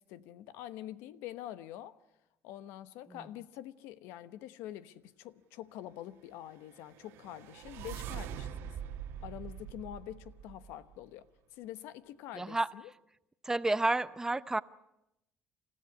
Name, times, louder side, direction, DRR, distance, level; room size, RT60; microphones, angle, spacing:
voice 1, 0.0-2.0 2.4-8.7 9.2-11.3 11.5-12.6, left 12 dB, 85° left, 1.1 m, -46 dB
sound 1, 6.8-11.0, right 9 dB, 80° right, 1.8 m, -43 dB
voice 2, 12.3-12.7 13.4-14.6, right 2 dB, 15° right, 0.8 m, -31 dB
28.0 x 15.5 x 9.8 m
cardioid pair, 95°, 4 cm